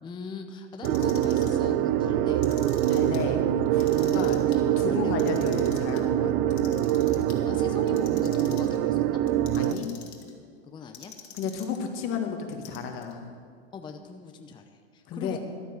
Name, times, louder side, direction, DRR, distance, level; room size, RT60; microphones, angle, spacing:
voice 1, 0.0-2.4 3.9-5.3 7.1-9.2 10.6-11.1 13.7-15.4, left 5 dB, 15° left, 6 dB, 0.7 m, -41 dB
Clock, 0.7-1.6 2.3-3.2 3.7-4.6 5.0-6.0 6.5-7.4 7.9-8.8 9.3-10.3 10.9-11.8 12.5-13.1, left 9 dB, 70° left, 2.0 m, -46 dB
sound 1, 0.8-9.7, right 11 dB, 35° right, 0.6 m, -24 dB
voice 2, 2.9-4.4 4.8-6.3 9.6-9.9 11.3-13.3 15.1-15.4, left 6 dB, 40° left, 4 dB, 1.8 m, -33 dB
12.0 x 9.0 x 6.8 m, 2.1 s
hypercardioid pair, 115°, 34 cm